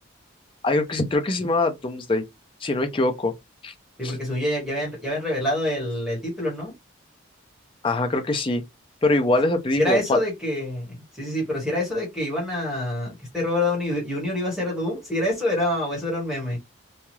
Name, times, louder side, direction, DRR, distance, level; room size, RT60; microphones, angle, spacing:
voice 1, 0.6-2.2 2.6-3.3 3.6-3.7 4.0-4.1 7.8-8.6 9.0-10.2, left 2 dB, 25° left, 0.5 m, -23 dB
voice 2, 4.0-6.7 9.8-16.6, left 1 dB, ahead, 1.3 m, -26 dB
2.8 x 2.3 x 3.0 m
head